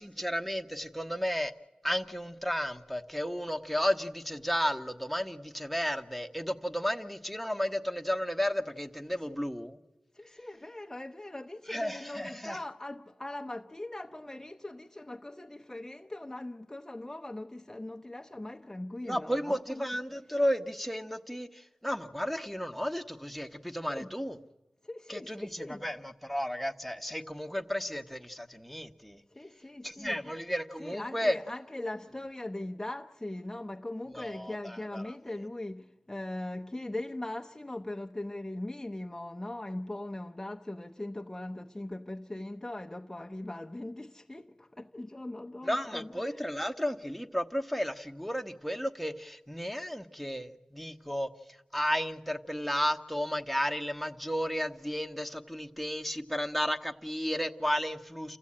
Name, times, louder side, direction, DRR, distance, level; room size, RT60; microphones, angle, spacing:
voice 1, 0.0-1.5 1.8-9.8 11.7-12.6 19.1-24.4 25.1-29.2 29.8-31.4 34.1-35.1 45.6-51.3 51.7-58.4, equal, ahead, 1.2 m, -33 dB
voice 2, 10.1-19.8 23.9-24.1 24.8-25.9 29.3-30.3 30.8-46.4, left 1 dB, 15° left, 0.8 m, -40 dB
29.0 x 14.5 x 8.7 m
cardioid pair, 50°, 2 cm